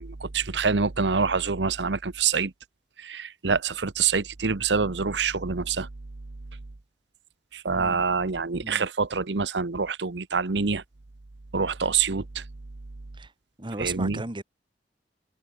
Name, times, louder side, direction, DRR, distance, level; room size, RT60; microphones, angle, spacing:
voice 1, 0.0-2.5 3.0-5.9 7.5-10.8 11.5-12.4 13.8-14.2, right 5 dB, 80° right, 1.0 m, -26 dB
voice 2, 7.7-8.0 8.6-8.8 13.2-13.3 13.6-14.4, right 2 dB, 30° right, 1.7 m, -35 dB
head